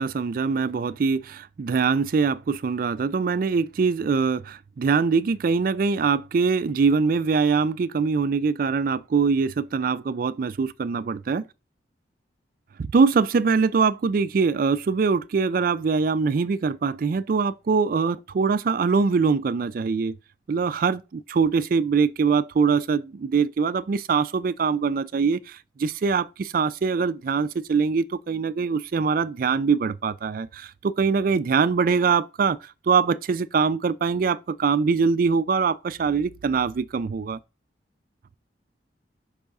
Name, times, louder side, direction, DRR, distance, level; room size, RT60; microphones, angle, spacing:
voice 1, 0.0-11.4 12.9-20.1 20.5-37.4, right 5 dB, 50° right, 0.3 m, -23 dB
5.5 x 3.4 x 5.4 m
head